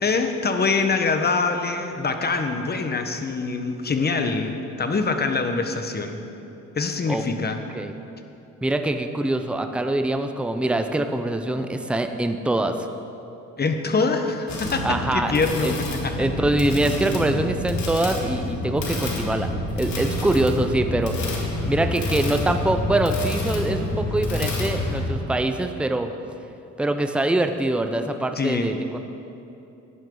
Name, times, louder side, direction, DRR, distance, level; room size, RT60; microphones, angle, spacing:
voice 1, 0.0-6.2 6.8-7.6 13.6-16.1 28.4-28.7, left 4 dB, 30° left, 6 dB, 1.2 m, -24 dB
voice 2, 8.6-12.8 14.8-15.3 15.6-15.8 16.1-19.5 19.8-26.1 26.8-29.0, right 1 dB, 5° right, 7 dB, 0.7 m, -24 dB
sound 1, 14.5-25.1, left 1 dB, 65° left, 2.6 m, -28 dB
15.5 x 11.0 x 3.9 m, 2.9 s
cardioid pair, 90°, 30 cm